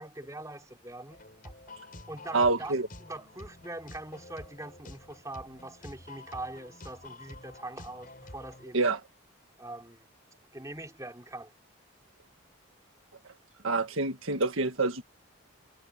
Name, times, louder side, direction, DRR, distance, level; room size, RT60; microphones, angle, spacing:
voice 1, 0.0-1.5 2.1-2.7 3.0-8.9 9.6-10.0 10.5-11.5, right 2 dB, 15° right, 3.7 m, -42 dB
sound 1, 1.1-8.7, left 2 dB, 40° left, 7.5 m, -49 dB
voice 2, 2.3-2.9 8.7-9.0 13.6-15.0, right 3 dB, 75° right, 1.6 m, -26 dB
head